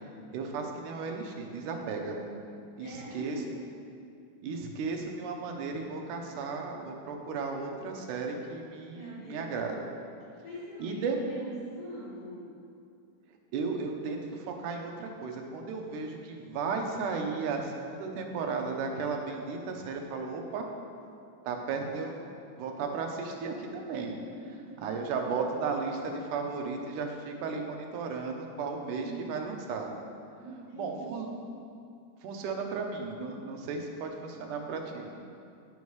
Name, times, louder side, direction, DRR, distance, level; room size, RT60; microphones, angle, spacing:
voice 1, 0.3-2.2 2.8-3.4 4.4-9.8 10.8-11.2 13.5-20.7 21.4-22.3 22.6-24.2 24.8-29.9 30.7-31.3 32.2-35.1, right 4 dB, 80° right, 2 dB, 2.2 m, -35 dB
voice 2, 2.8-3.7 8.9-9.6 10.4-12.5 24.3-24.9 29.0-29.3 30.4-31.6, right 1 dB, 85° left, -8 dB, 3.3 m, -43 dB
9.4 x 6.9 x 3.1 m, 2.5 s
omnidirectional pair, 3.6 m